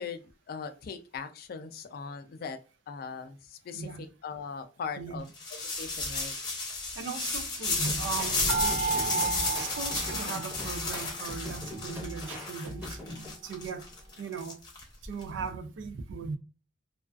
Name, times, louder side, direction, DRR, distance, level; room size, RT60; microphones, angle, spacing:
voice 1, 0.0-2.6 2.9-5.3 5.5-6.3, left 5 dB, 55° left, 0.3 m, -40 dB
voice 2, 3.7-4.1 5.0-5.2 7.0-9.3 9.6-13.0 13.4-13.9 14.2-14.6 15.0-16.4, right 5 dB, 80° right, 0.3 m, -38 dB
sound 1, 5.3-15.2, left 3 dB, 25° left, 0.7 m, -33 dB
sound 2, 7.8-13.3, equal, 10° right, 0.9 m, -41 dB
sound 3, 8.5-11.0 11.3-12.3 12.8-12.9 13.1-13.3, right 4 dB, 55° right, 0.7 m, -33 dB
2.3 x 2.3 x 2.3 m
head